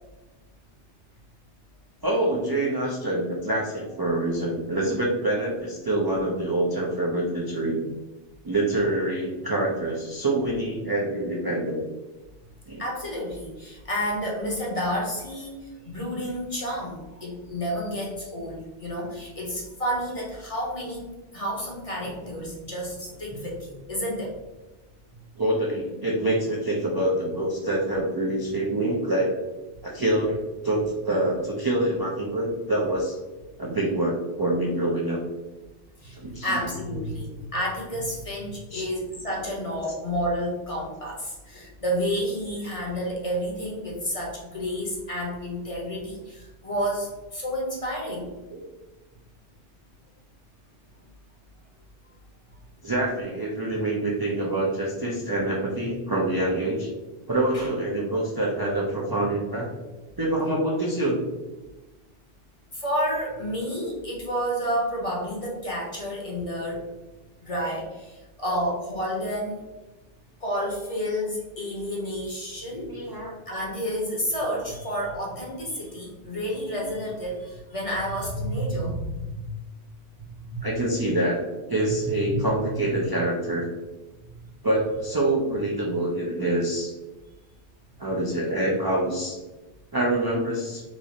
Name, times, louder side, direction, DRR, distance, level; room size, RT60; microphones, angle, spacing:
voice 1, 2.0-7.8 8.4-11.8 12.7-12.8 25.4-29.3 29.8-33.2 33.6-35.2 36.2-36.6 38.7-38.8 48.5-48.6 52.8-56.9 57.3-59.7 60.2-61.2 72.9-73.4 80.6-81.4 81.7-83.7 84.6-86.9 88.0-89.4 89.9-90.8, right 1 dB, 35° right, -4 dB, 0.4 m, -26 dB
voice 2, 12.8-21.0 21.3-24.4 36.0-48.3 57.5-57.7 62.7-66.8 67.4-69.6 70.4-73.0 73.5-79.5 80.5-80.6 82.3-82.5, equal, 35° left, -3 dB, 0.8 m, -30 dB
3.1 x 2.5 x 4.0 m, 1.1 s
omnidirectional pair, 1.2 m